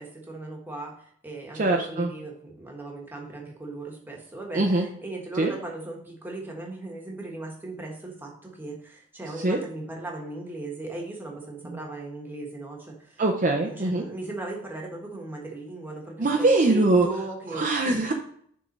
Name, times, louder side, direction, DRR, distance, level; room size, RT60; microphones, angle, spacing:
voice 1, 0.0-13.2 13.6-18.0, right 2 dB, 10° right, -1 dB, 1.3 m, -38 dB
voice 2, 1.6-2.1 4.5-4.9 5.4-5.5 9.4-9.6 13.2-14.0 16.2-17.1 17.5-18.1, right 2 dB, 35° right, 1 dB, 0.6 m, -22 dB
6.8 x 3.8 x 5.2 m, 0.64 s
head